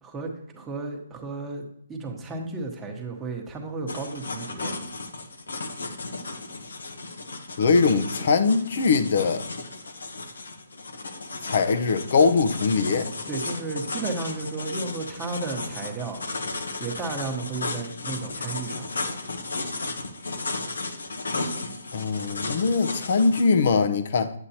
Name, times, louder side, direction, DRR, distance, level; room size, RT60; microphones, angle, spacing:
voice 1, 0.0-4.7 13.3-16.2 16.8-18.9, right 3 dB, 10° right, 1.2 m, -33 dB
sound 1, 3.9-23.4, left 3 dB, 90° left, 1.0 m, -34 dB
voice 2, 7.6-9.4 11.4-13.1 21.9-24.3, left 4 dB, 60° left, 0.7 m, -21 dB
8.6 x 8.0 x 2.8 m
hypercardioid pair, 155°, 0 cm